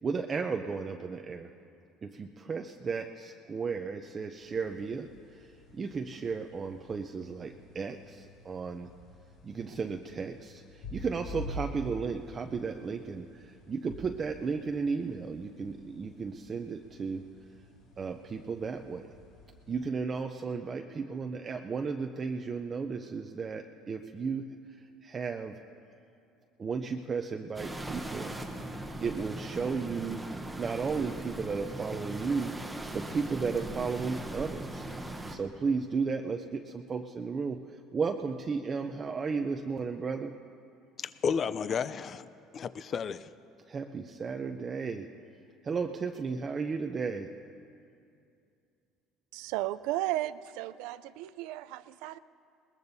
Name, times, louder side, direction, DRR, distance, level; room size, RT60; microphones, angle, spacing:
voice 1, 0.0-1.5 2.0-5.5 5.7-8.9 9.4-17.2 18.0-19.1 19.7-24.5 25.0-25.5 26.6-28.3 29.0-30.2 30.5-32.5 32.9-34.9 35.3-40.3 43.7-45.1 45.6-47.3, right 5 dB, 25° right, 0.5 m, -34 dB
sound 1, 4.3-19.8, equal, 70° left, 4.0 m, -48 dB
sound 2, 27.5-35.4, right 1 dB, 5° right, 0.9 m, -39 dB
voice 2, 41.0-43.3, left 6 dB, 35° left, 0.4 m, -33 dB
voice 3, 49.3-52.2, right 15 dB, 80° right, 0.4 m, -34 dB
21.5 x 20.5 x 2.7 m
cardioid pair, 145°, 0 cm